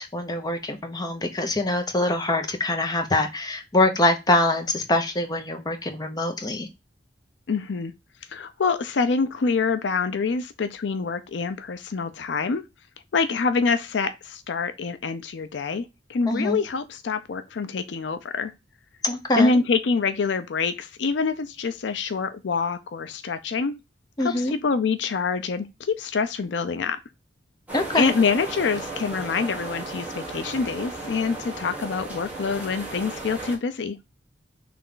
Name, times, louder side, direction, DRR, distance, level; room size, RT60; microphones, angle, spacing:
voice 1, 0.0-6.7 16.2-16.6 19.0-19.6 24.2-24.5 27.7-28.1, left 2 dB, 20° left, 0.8 m, -24 dB
voice 2, 7.5-7.9 8.3-12.6 13.1-18.5 19.3-23.7 24.2-27.0 28.0-34.0, left 4 dB, 75° left, 0.5 m, -26 dB
sound 1, 27.7-33.6, right 2 dB, 10° right, 1.4 m, -35 dB
3.4 x 3.2 x 3.7 m
head